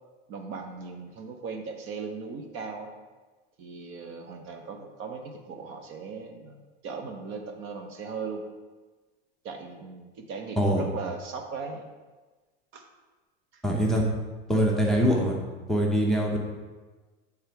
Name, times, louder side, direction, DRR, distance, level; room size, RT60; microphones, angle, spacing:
voice 1, 0.3-2.9 3.6-8.4 9.4-11.9 12.7-12.9 13.5-13.6 16.1-16.3, right 4 dB, 40° right, 5 dB, 0.8 m, -38 dB
voice 2, 13.6-14.1 14.5-15.4 15.7-16.4, equal, ahead, -2 dB, 0.6 m, -23 dB
8.5 x 3.4 x 4.6 m, 1.3 s
supercardioid pair, 135°, 31 cm